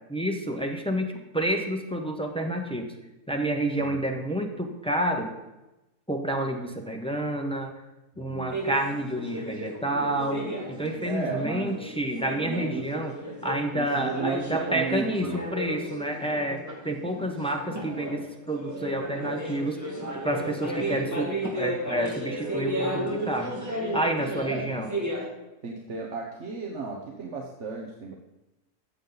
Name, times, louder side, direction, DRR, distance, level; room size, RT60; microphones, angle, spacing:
voice 1, 0.1-2.9 3.3-5.3 6.1-7.8 8.2-13.1 13.4-23.6 23.9-24.9, right 1 dB, 5° left, 3 dB, 0.7 m, -29 dB
voice 2, 8.1-8.6 11.0-11.8 12.4-13.1 13.7-15.4 24.4-24.9 25.6-28.1, right 5 dB, 50° right, 0 dB, 1.3 m, -34 dB
sound 1, 8.5-25.2, equal, 10° right, 2.1 m, -34 dB
13.5 x 7.2 x 4.0 m, 1.0 s
omnidirectional pair, 1.6 m